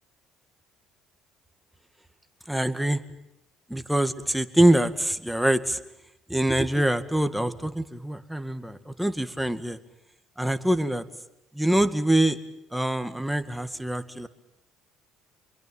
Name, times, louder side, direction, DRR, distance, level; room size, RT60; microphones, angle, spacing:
voice 1, 2.5-3.0 3.7-5.8 6.3-9.8 10.4-11.1 11.5-12.4 12.7-14.3, right 1 dB, 5° right, 10 dB, 2.2 m, -24 dB
27.0 x 22.5 x 9.0 m, 0.82 s
supercardioid pair, 75°, 0 cm